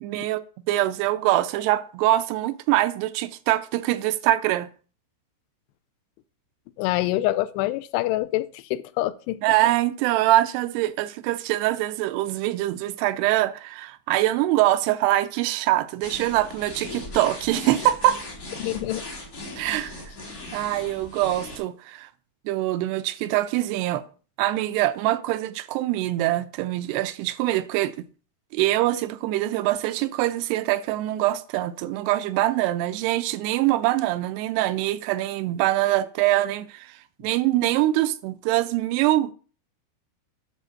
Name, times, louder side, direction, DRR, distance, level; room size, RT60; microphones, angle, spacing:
voice 1, 0.0-4.7 9.4-18.2 19.6-20.0 20.5-22.1 22.5-24.0 24.4-28.0 28.5-36.9 37.2-39.3, right 15 dB, 85° right, 2.5 m, -24 dB
voice 2, 6.8-9.4 18.6-19.0, left 16 dB, 85° left, 2.6 m, -26 dB
sound 1, 16.0-21.6, left 2 dB, 55° left, 0.9 m, -38 dB
10.0 x 3.6 x 6.2 m
omnidirectional pair, 4.8 m